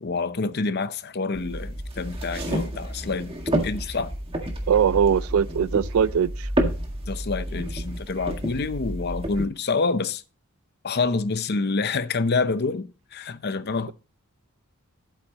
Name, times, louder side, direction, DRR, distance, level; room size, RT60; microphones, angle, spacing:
voice 1, 0.0-3.4 3.6-4.1 7.1-10.2 10.8-13.9, left 4 dB, 50° left, 0.7 m, -27 dB
sound 1, 1.3-9.4, right 1 dB, 25° right, 1.8 m, -30 dB
voice 2, 4.7-6.5, right 7 dB, 70° right, 0.4 m, -21 dB
12.0 x 8.5 x 3.0 m
head